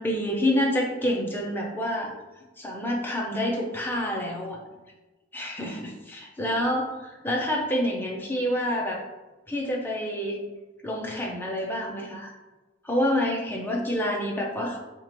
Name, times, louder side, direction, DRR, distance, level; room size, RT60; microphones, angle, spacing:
voice 1, 0.0-2.1 2.6-4.6 5.3-9.0 9.5-10.4 10.8-12.3 12.8-14.8, equal, 10° left, -2 dB, 0.6 m, -28 dB
4.4 x 2.5 x 3.0 m, 1.1 s
head